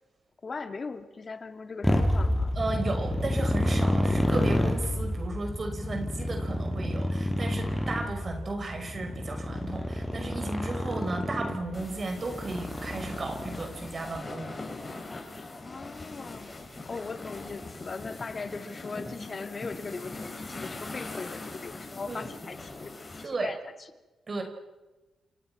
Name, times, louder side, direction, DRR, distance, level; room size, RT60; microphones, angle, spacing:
voice 1, 0.4-2.5 15.6-16.6 16.8-23.7, left 4 dB, 45° left, 8 dB, 2.6 m, -39 dB
Motorcycle, 1.8-13.9, left 1 dB, 5° left, 5.8 m, -29 dB
voice 2, 2.6-14.6 16.9-17.0 22.1-22.2 23.2-23.5 24.3-24.4, right 3 dB, 45° right, 5 dB, 5.6 m, -34 dB
sound 1, 11.7-23.2, left 2 dB, 30° left, 7.0 m, -41 dB
28.0 x 28.0 x 6.2 m, 1.1 s
supercardioid pair, 55°, 0 cm